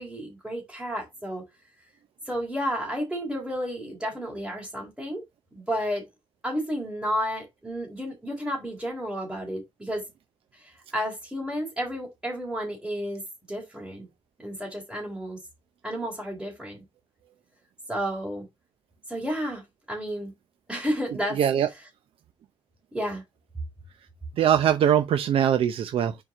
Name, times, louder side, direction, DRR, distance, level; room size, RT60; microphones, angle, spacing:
voice 1, 0.0-1.4 2.3-5.2 5.5-6.1 6.4-10.0 10.5-14.1 14.4-15.4 15.8-16.8 17.9-18.5 19.1-20.3 20.7-21.4 22.9-23.2, equal, 5° right, 3.7 m, -32 dB
voice 2, 21.4-21.7 24.4-26.2, right 9 dB, 85° right, 0.7 m, -22 dB
7.4 x 4.8 x 3.7 m
wide cardioid pair, 125°, 9 cm